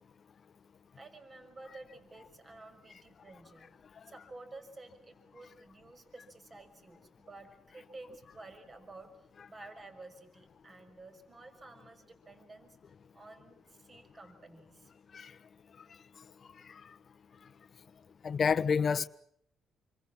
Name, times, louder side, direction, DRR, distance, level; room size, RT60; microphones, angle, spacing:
voice 1, 1.0-3.7 4.0-12.8 13.1-14.9, right 2 dB, 30° right, 6.0 m, -52 dB
voice 2, 18.2-19.1, left 6 dB, 45° left, 1.2 m, -29 dB
28.5 x 25.0 x 7.4 m
cardioid pair, 90°, 0 cm